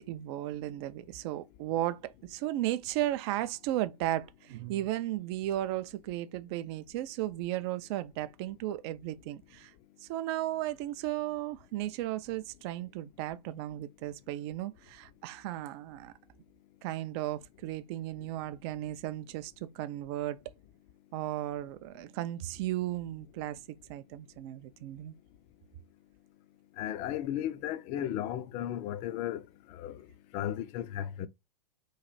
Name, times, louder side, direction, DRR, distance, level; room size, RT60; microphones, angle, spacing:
voice 1, 0.0-9.7 10.0-16.1 16.8-20.4 21.1-25.1, right 14 dB, 40° right, 0.4 m, -35 dB
voice 2, 26.8-30.1 30.3-31.3, left 11 dB, 35° left, 0.5 m, -35 dB
3.1 x 2.4 x 4.0 m
figure-of-eight pair, 100°, 20 cm